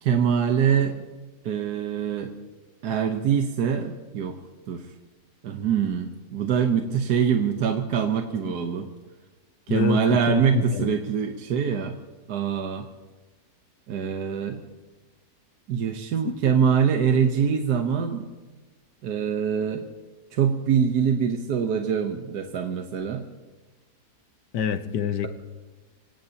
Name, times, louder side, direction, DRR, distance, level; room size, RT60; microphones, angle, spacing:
voice 1, 0.0-1.0 1.4-2.3 2.8-4.4 4.7-4.8 5.4-8.9 9.7-12.0 12.3-12.9 13.9-14.6 15.7-18.3 19.0-19.8 20.3-23.2, right 7 dB, 75° right, 5 dB, 1.5 m, -24 dB
voice 2, 9.7-10.9 24.5-25.3, left 7 dB, 85° left, 11 dB, 1.5 m, -26 dB
25.5 x 18.5 x 2.9 m, 1.2 s
omnidirectional pair, 1.8 m